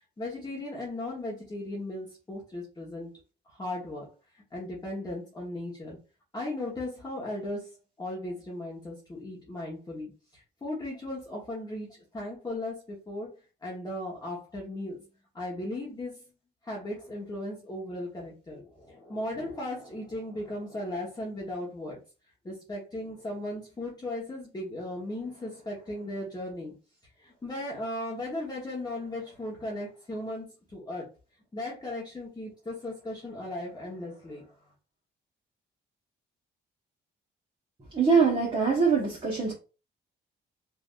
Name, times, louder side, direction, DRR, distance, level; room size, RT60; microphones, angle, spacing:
voice 1, 0.2-3.1 3.5-6.0 6.3-7.7 8.0-13.3 13.6-15.0 15.3-16.2 16.6-22.0 22.4-26.7 27.2-31.1 31.5-34.5, left 1 dB, 20° left, -4 dB, 1.1 m, -37 dB
voice 2, 37.9-39.5, right 5 dB, 25° right, -5 dB, 1.2 m, -23 dB
3.3 x 2.6 x 2.4 m, 0.33 s
cardioid pair, 90°, 20 cm